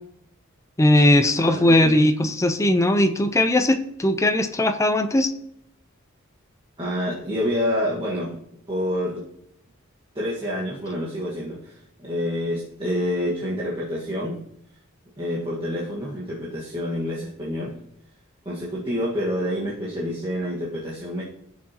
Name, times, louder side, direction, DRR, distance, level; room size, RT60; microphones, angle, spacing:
voice 1, 0.8-5.3, left 1 dB, 15° left, 8 dB, 0.6 m, -19 dB
voice 2, 1.3-2.0 6.8-8.4 8.7-9.2 10.1-14.4 15.2-17.7 18.4-21.2, equal, 25° right, -7 dB, 1.6 m, -28 dB
16.5 x 6.3 x 3.0 m, 0.73 s
head